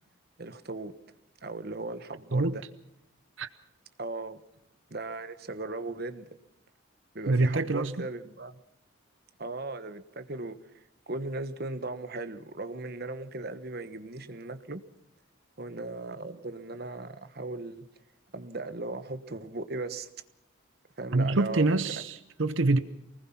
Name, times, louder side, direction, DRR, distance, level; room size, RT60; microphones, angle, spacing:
voice 1, 0.4-0.9 1.4-2.6 4.0-4.4 4.9-6.3 7.1-8.6 9.4-14.8 15.6-17.8 18.3-20.1 21.0-22.0, right 2 dB, 50° right, 1.2 m, -37 dB
voice 2, 7.3-8.1 21.1-22.8, right 2 dB, 65° right, 0.9 m, -25 dB
24.5 x 19.5 x 5.9 m
head